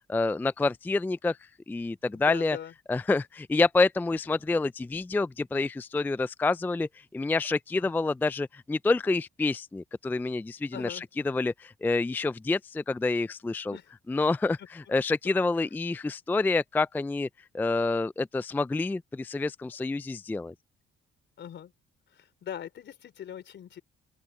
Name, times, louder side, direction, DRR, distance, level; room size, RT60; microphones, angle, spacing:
voice 1, 0.1-1.4 1.7-2.6 2.9-13.8 14.1-17.3 17.5-20.5, left 3 dB, 10° left, 0.3 m, -28 dB
voice 2, 2.1-2.7 7.7-8.0 10.7-11.0 13.7-13.9 14.6-14.7 21.4-21.7 22.1-23.8, left 9 dB, 65° left, 3.8 m, -41 dB
open air
cardioid pair, 90°, 20 cm